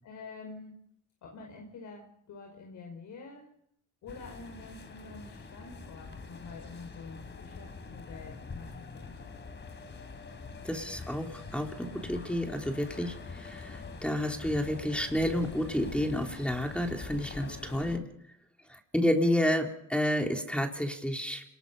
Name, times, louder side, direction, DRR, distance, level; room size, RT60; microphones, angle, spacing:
voice 1, 0.0-0.7 1.2-3.5 4.0-9.2, left 4 dB, 75° left, 1 dB, 5.5 m, -47 dB
sound 1, 4.1-18.0, left 4 dB, 40° left, 3.6 m, -45 dB
voice 2, 10.6-18.0 18.7-21.4, equal, 5° left, 2 dB, 3.4 m, -30 dB
28.0 x 20.0 x 5.5 m, 0.71 s
cardioid pair, 90°, 30 cm